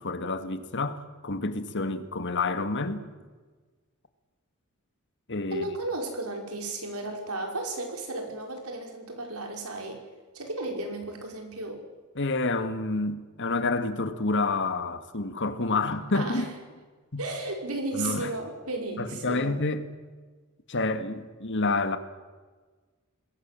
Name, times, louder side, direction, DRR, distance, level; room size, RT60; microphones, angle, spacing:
voice 1, 0.0-3.0 5.3-5.8 12.2-16.5 17.1-17.2 17.9-18.3 19.0-19.9 20.7-22.0, left 3 dB, 55° left, 1.9 m, -28 dB
voice 2, 5.5-10.0 10.3-11.8 16.1-16.5 17.2-19.5, right 2 dB, 80° right, 5.5 m, -34 dB
27.0 x 20.5 x 7.7 m
head